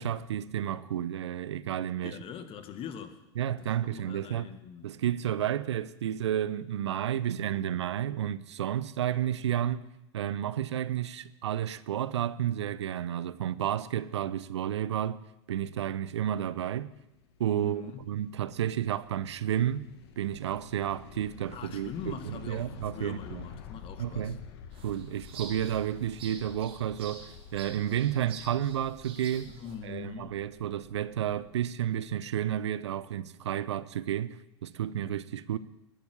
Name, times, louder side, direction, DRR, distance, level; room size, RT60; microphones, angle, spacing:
voice 1, 0.0-2.2 3.4-4.5 4.8-9.9 10.1-15.2 15.5-16.9 17.4-19.9 20.2-23.5 24.0-24.4 24.8-29.5 29.8-35.6, right 10 dB, 70° right, 0.8 m, -31 dB
voice 2, 2.0-3.2 3.6-5.0 17.6-18.1 21.5-24.4 29.5-30.4, left 7 dB, 40° left, 1.9 m, -43 dB
sound 1, 16.4-31.7, left 6 dB, 60° left, 1.8 m, -50 dB
sound 2, 24.7-29.7, right 5 dB, 40° right, 4.5 m, -48 dB
19.5 x 9.0 x 8.3 m
figure-of-eight pair, 85°, 15 cm